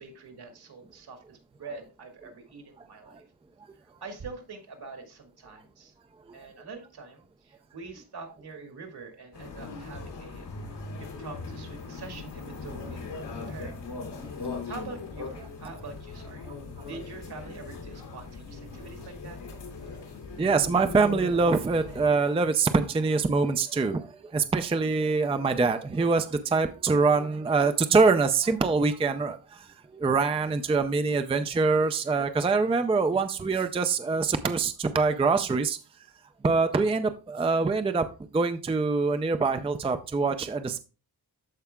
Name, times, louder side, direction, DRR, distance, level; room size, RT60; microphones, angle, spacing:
voice 1, 0.0-3.2 4.0-5.9 6.3-13.8 14.2-14.4 14.7-16.5 16.8-19.4, right 4 dB, 70° right, 4 dB, 2.1 m, -45 dB
sound 1, 9.3-22.1, left 4 dB, 85° left, 2.5 m, -39 dB
voice 2, 20.4-35.8 36.4-38.0 38.3-40.8, right 4 dB, 15° right, 9 dB, 0.4 m, -24 dB
14.0 x 4.7 x 2.2 m, 0.31 s
wide cardioid pair, 145°, 40 cm